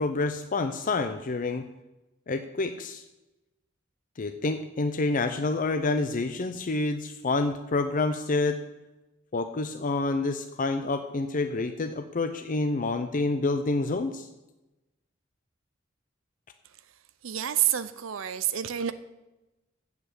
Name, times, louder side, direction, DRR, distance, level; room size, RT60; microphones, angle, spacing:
voice 1, 0.0-1.6 2.3-3.0 4.2-8.6 9.3-14.3, left 3 dB, 45° left, 8 dB, 0.6 m, -28 dB
voice 2, 17.2-18.9, right 11 dB, 80° right, 12 dB, 0.6 m, -28 dB
7.8 x 7.0 x 8.1 m, 1.0 s
head